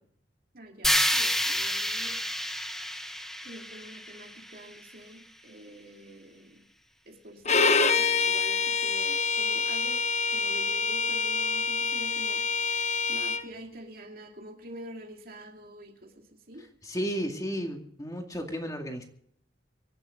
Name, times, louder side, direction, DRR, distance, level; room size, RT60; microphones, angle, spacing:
voice 1, 0.5-2.2 3.2-6.7 7.1-10.1 10.3-16.7, right 1 dB, 50° right, 3 dB, 2.5 m, -46 dB
sound 1, 0.8-4.9, equal, ahead, 1.1 m, -29 dB
Bowed string instrument, 7.5-13.4, left 5 dB, 35° left, 0.9 m, -26 dB
voice 2, 16.8-19.0, equal, 20° left, 3 dB, 2.3 m, -33 dB
24.5 x 11.0 x 3.9 m, 0.65 s
head